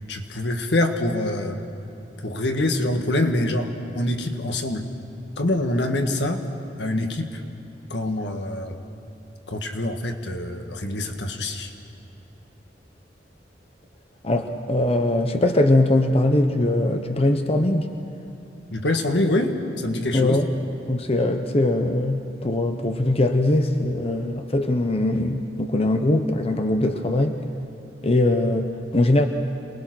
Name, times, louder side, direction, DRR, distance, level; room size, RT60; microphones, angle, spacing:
voice 1, 0.1-1.6 2.2-4.9 5.4-6.4 6.8-7.4 7.9-8.8 9.5-11.7 18.7-20.4, left 1 dB, 80° left, 5 dB, 1.6 m, -25 dB
voice 2, 14.2-17.9 20.1-20.5 20.9-27.4 28.0-29.3, left 1 dB, 35° left, 6 dB, 0.9 m, -21 dB
27.0 x 20.5 x 6.2 m, 2.8 s
head